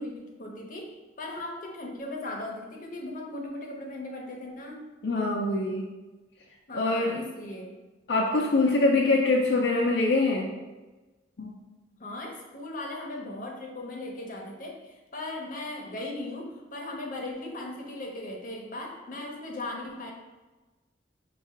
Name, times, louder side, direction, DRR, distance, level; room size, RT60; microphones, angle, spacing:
voice 1, 0.0-4.8 6.7-7.8 12.0-20.1, left 2 dB, 50° left, -1 dB, 0.8 m, -38 dB
voice 2, 5.0-5.8 6.7-7.2 8.1-10.5 11.4-11.5, left 2 dB, 75° left, -2 dB, 0.5 m, -24 dB
5.3 x 2.4 x 3.6 m, 1.2 s
head